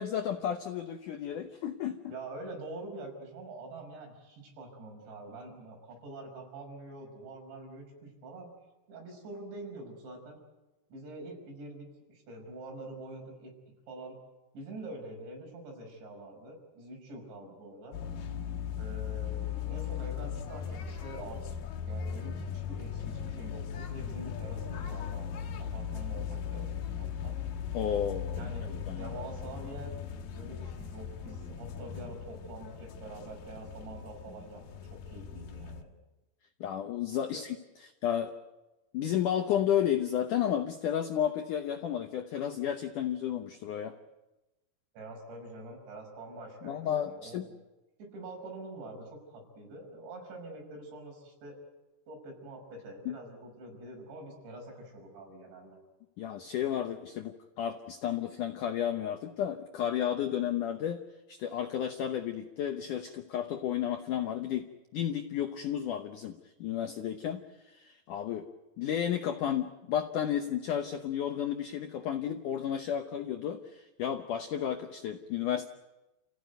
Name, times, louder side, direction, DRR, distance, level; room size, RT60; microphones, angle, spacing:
voice 1, 0.0-2.1 27.7-28.5 28.9-29.1 36.6-37.6 38.0-38.3 38.9-43.9 46.6-47.4 53.1-53.2 56.2-61.0 61.3-64.7 64.9-68.5 68.8-75.7, left 9 dB, 80° left, 6 dB, 1.8 m, -32 dB
voice 2, 2.1-8.5 8.9-10.4 10.9-13.5 13.9-14.2 14.5-18.0 18.8-21.5 21.8-25.4 25.7-27.4 28.4-29.9 30.3-34.6 34.9-35.9 37.3-37.4 44.9-47.5 48.0-51.6 52.1-55.8, right 2 dB, 80° right, 2 dB, 7.7 m, -45 dB
sound 1, 17.9-35.8, left 8 dB, 60° left, 3.2 m, -38 dB
29.5 x 16.0 x 9.3 m, 1.0 s
omnidirectional pair, 5.0 m